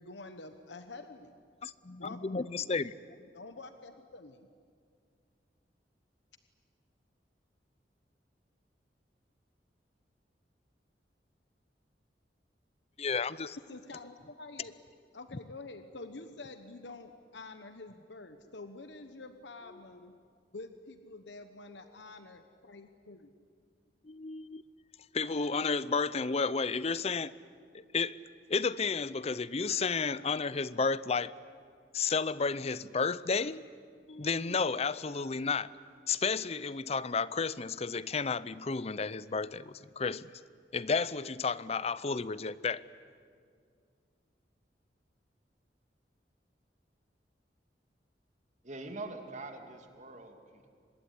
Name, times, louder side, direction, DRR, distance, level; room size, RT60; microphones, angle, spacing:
voice 1, 0.0-1.3 2.0-2.7 3.3-4.5 13.7-14.7 15.1-20.1 20.5-23.2, left 3 dB, 90° left, 1.2 m, -47 dB
voice 2, 1.6-2.9 13.0-13.6 24.1-24.6 25.1-27.3 27.7-28.2 28.5-31.4 31.9-33.6 34.1-35.7 36.1-40.3 40.7-42.8, left 4 dB, 35° left, 0.6 m, -32 dB
voice 3, 48.6-50.7, right 2 dB, 45° right, 2.5 m, -44 dB
25.5 x 20.5 x 10.0 m
head